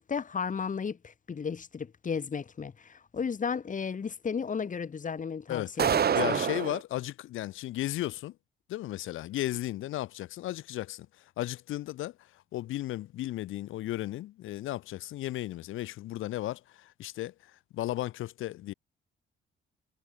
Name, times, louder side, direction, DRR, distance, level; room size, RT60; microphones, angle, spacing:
voice 1, 0.0-6.4, left 6 dB, 40° left, 4.4 m, -34 dB
sound 1, 5.8-6.8, right 8 dB, 55° right, 3.9 m, -26 dB
voice 2, 6.1-8.4 8.7-18.7, left 15 dB, 85° left, 5.2 m, -35 dB
cardioid pair, 90°, 20 cm